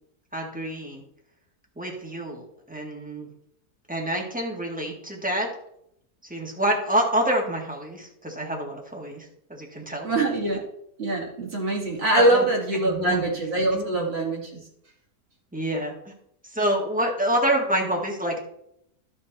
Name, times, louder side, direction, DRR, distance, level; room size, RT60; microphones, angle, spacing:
voice 1, 0.3-1.0 1.8-3.3 3.9-5.5 6.2-10.3 12.1-12.5 12.7-13.2 13.7-14.1 15.5-16.1 16.5-18.4, right 1 dB, 5° right, -1 dB, 1.8 m, -27 dB
voice 2, 10.0-10.6 11.0-14.6, right 2 dB, 40° right, -1 dB, 2.2 m, -23 dB
12.0 x 6.0 x 4.1 m, 0.74 s
omnidirectional pair, 1.7 m